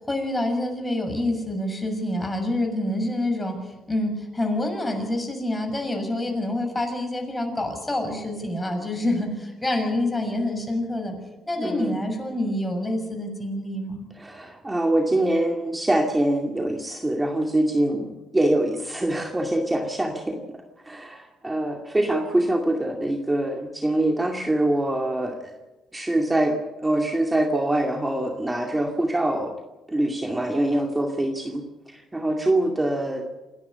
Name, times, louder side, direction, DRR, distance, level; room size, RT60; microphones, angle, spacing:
voice 1, 0.1-3.5 3.9-11.1 11.5-14.1, left 1 dB, 15° left, 4 dB, 6.7 m, -27 dB
voice 2, 11.6-12.0 14.2-25.5 25.9-29.5 29.9-33.3, right 1 dB, 15° right, 2 dB, 2.3 m, -24 dB
28.0 x 11.0 x 9.8 m, 1.1 s
cardioid pair, 90°, 0 cm